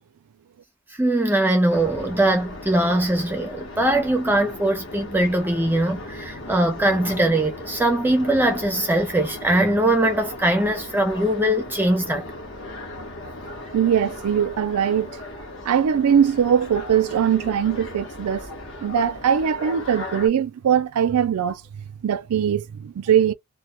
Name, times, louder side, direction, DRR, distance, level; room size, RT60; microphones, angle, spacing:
voice 1, 1.0-12.3, right 1 dB, 10° right, 0.4 m, -21 dB
sound 1, 1.7-20.3, left 1 dB, 60° left, 0.9 m, -37 dB
voice 2, 13.7-15.1 15.6-18.5 18.8-21.6 22.0-23.3, right 8 dB, 85° right, 0.4 m, -21 dB
2.1 x 2.1 x 2.9 m
head